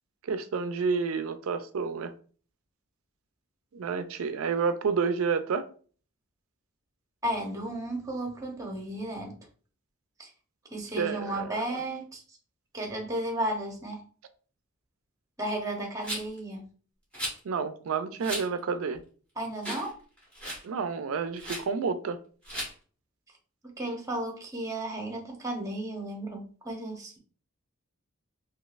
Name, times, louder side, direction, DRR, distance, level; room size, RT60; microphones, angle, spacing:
voice 1, 0.2-2.1 3.7-5.6 11.0-11.8 17.4-19.0 20.6-22.2, right 5 dB, 70° right, 10 dB, 0.4 m, -30 dB
voice 2, 7.2-9.4 10.2-10.3 10.7-12.2 12.7-14.0 15.4-16.6 19.4-20.0 23.8-27.2, right 1 dB, 15° right, 1 dB, 0.9 m, -34 dB
Rattle, 16.0-16.4 17.1-17.4 18.2-18.5 18.9-19.0 19.6-19.9 20.2-20.6 21.4-21.6 22.4-22.7, equal, 5° left, 1.6 m, -35 dB
3.8 x 2.8 x 2.4 m, 0.41 s
head